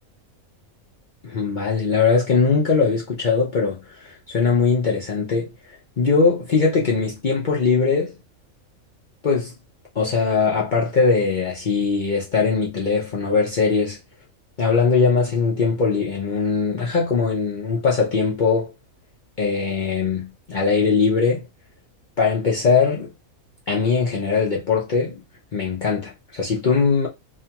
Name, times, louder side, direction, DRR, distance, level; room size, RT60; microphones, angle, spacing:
voice 1, 1.2-3.8 4.0-5.5 6.0-8.1 9.2-9.5 9.9-14.0 14.6-18.7 19.4-21.4 22.2-23.1 23.7-25.2 25.5-27.1, left 5 dB, 50° left, 0.6 m, -20 dB
2.7 x 2.4 x 2.8 m
omnidirectional pair, 1.5 m